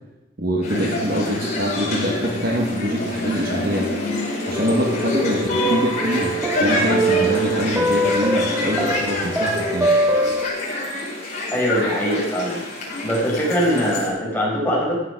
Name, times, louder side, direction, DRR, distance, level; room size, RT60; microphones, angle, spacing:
voice 1, 0.4-3.9 4.5-9.9, equal, 50° right, 2 dB, 1.7 m, -24 dB
sound 1, 0.6-14.1, left 1 dB, 40° left, 4.8 m, -26 dB
sound 2, 4.5-5.6 6.0-10.4, right 1 dB, 5° right, 1.2 m, -23 dB
voice 2, 11.5-12.6 13.0-14.9, equal, 10° left, -5 dB, 5.2 m, -22 dB
14.5 x 9.3 x 6.1 m, 1.0 s
head